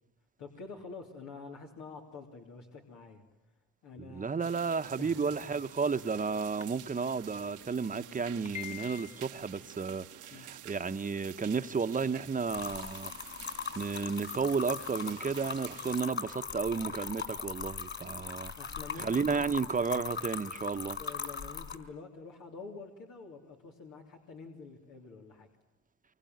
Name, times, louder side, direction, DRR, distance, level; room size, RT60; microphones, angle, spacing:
voice 1, 0.4-3.2 3.8-4.6 5.0-5.6 10.3-10.5 18.0-19.4 20.9-25.5, left 4 dB, 90° left, 3.3 m, -47 dB
voice 2, 4.0-13.1 13.7-18.5 19.0-21.0, right 5 dB, 25° right, 1.0 m, -32 dB
sound 1, 4.4-16.0, right 12 dB, 80° right, 1.2 m, -50 dB
sound 2, 5.5-5.8 6.6-6.7 7.0-7.1 7.5-7.6 8.2-9.6, left 10 dB, 20° left, 1.4 m, -44 dB
sound 3, 12.5-21.8, left 6 dB, 40° left, 4.2 m, -40 dB
25.5 x 24.0 x 9.4 m
cardioid pair, 90°, 30 cm